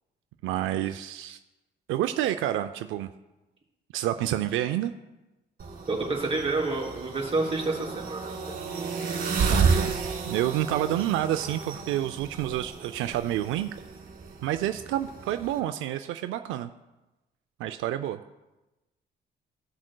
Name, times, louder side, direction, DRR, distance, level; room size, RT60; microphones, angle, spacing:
voice 1, 0.4-1.4 1.9-3.1 3.9-4.9 9.5-10.0 10.3-13.7 14.4-16.7 17.6-18.2, right 12 dB, 85° right, 9 dB, 0.4 m, -29 dB
sound 1, 5.6-15.6, right 5 dB, 50° right, 1.9 m, -31 dB
voice 2, 5.9-8.3, right 3 dB, 30° right, -2 dB, 2.8 m, -28 dB
16.5 x 6.1 x 2.2 m, 1.0 s
cardioid pair, 90°, 20 cm